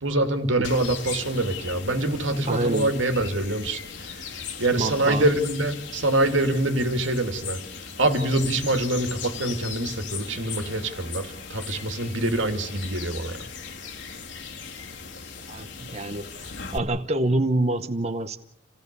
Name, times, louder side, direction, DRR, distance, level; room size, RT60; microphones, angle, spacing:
voice 1, 0.0-3.8 4.6-7.6 8.0-13.4, right 1 dB, 90° right, 2.5 m, -25 dB
sound 1, 0.6-16.8, left 6 dB, 70° left, 2.3 m, -38 dB
voice 2, 2.5-3.0 4.7-5.3 15.5-18.4, right 2 dB, 35° right, 0.9 m, -26 dB
27.5 x 17.0 x 6.8 m
head